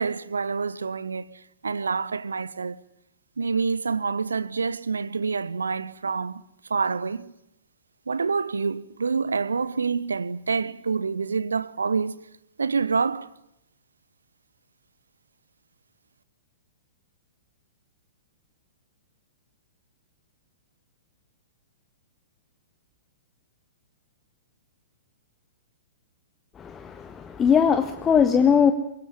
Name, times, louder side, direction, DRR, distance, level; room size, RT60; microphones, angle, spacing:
voice 1, 0.0-2.8 3.4-6.4 6.7-7.3 8.1-12.2 12.6-13.3, right 5 dB, 70° right, 1.1 m, -27 dB
voice 2, 26.6-28.7, left 7 dB, 20° left, 1.4 m, -20 dB
24.5 x 22.5 x 9.9 m
figure-of-eight pair, 110°, 0 cm